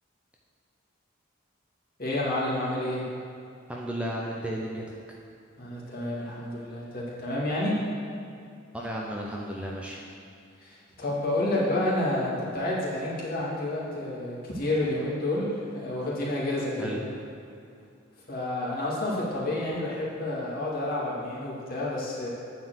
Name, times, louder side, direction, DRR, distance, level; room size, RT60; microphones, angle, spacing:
voice 1, 2.0-3.0 5.6-7.8 10.6-17.0 18.3-22.3, left 1 dB, 45° left, -6 dB, 2.3 m, -29 dB
voice 2, 3.7-5.2 8.7-10.1 16.8-17.0, right 1 dB, 5° right, -3 dB, 0.6 m, -34 dB
9.6 x 4.6 x 7.7 m, 2.5 s
head